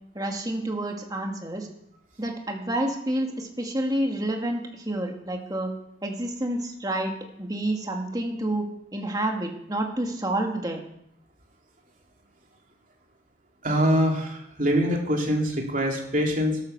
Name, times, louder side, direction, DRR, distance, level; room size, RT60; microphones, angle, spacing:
voice 1, 0.1-1.7 2.2-5.7 6.0-10.8, right 1 dB, 20° right, 2 dB, 2.2 m, -29 dB
voice 2, 13.6-16.6, equal, 45° right, 0 dB, 3.3 m, -24 dB
13.0 x 12.0 x 6.8 m, 0.75 s
head